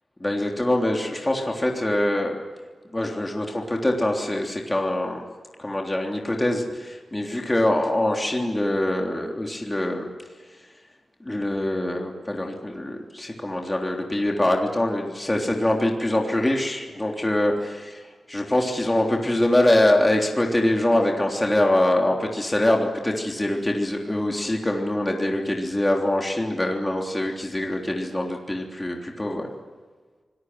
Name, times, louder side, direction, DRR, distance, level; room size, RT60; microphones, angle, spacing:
voice 1, 0.2-2.4 2.9-5.2 5.6-10.1 11.2-18.0 18.3-29.5, left 1 dB, 15° left, 0 dB, 3.4 m, -24 dB
25.5 x 20.5 x 8.0 m, 1.4 s
wide cardioid pair, 100°, 0 cm